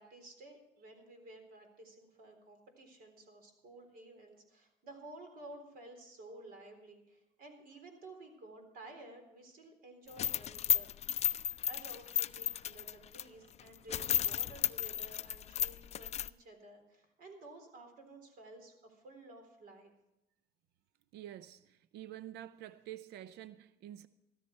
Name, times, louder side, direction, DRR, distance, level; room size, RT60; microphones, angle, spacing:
voice 1, 0.0-10.9 11.7-19.9, right 2 dB, 60° right, 3.8 m, -53 dB
sound 1, 10.1-13.2 13.6-13.7 13.9-16.3, left 10 dB, 40° left, 0.4 m, -33 dB
voice 2, 21.1-24.1, right 12 dB, 75° right, 0.6 m, -48 dB
14.0 x 13.5 x 4.5 m
cardioid pair, 110°, 17 cm